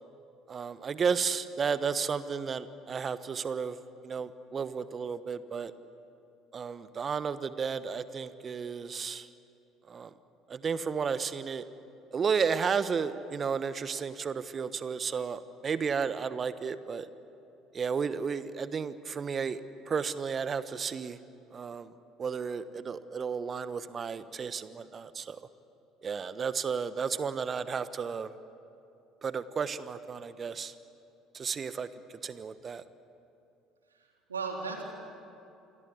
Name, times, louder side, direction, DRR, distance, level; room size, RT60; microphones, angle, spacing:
voice 1, 0.5-3.8 4.0-5.7 6.5-9.3 9.9-10.1 10.5-11.6 12.1-17.1 17.7-19.6 19.9-21.2 21.5-21.9 22.2-25.4 26.0-28.3 29.2-30.7 31.3-31.9 32.2-32.8, right 6 dB, 35° right, 14 dB, 1.2 m, -33 dB
voice 2, 33.9-34.8, right 4 dB, 85° right, 1 dB, 3.5 m, -37 dB
28.0 x 22.5 x 8.4 m, 2.7 s
figure-of-eight pair, 60°, 0 cm